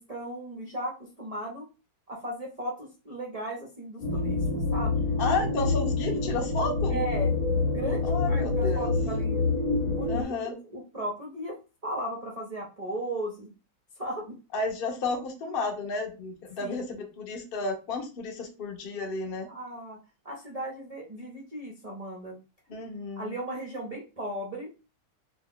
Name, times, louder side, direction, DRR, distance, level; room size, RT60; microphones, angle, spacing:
voice 1, 0.0-1.7 2.1-5.0 6.9-9.5 9.8-13.5 14.0-14.4 16.6-17.0 19.5-20.0 20.2-22.4 23.2-24.7, right 1 dB, 65° right, -3 dB, 0.3 m, -36 dB
sound 1, 4.0-10.2, left 3 dB, 40° left, 1.1 m, -27 dB
voice 2, 5.2-7.0 8.0-8.9 10.1-10.5 14.5-19.5 22.7-23.3, left 3 dB, 65° left, 3 dB, 0.5 m, -32 dB
2.9 x 2.2 x 3.6 m, 0.30 s
omnidirectional pair, 1.9 m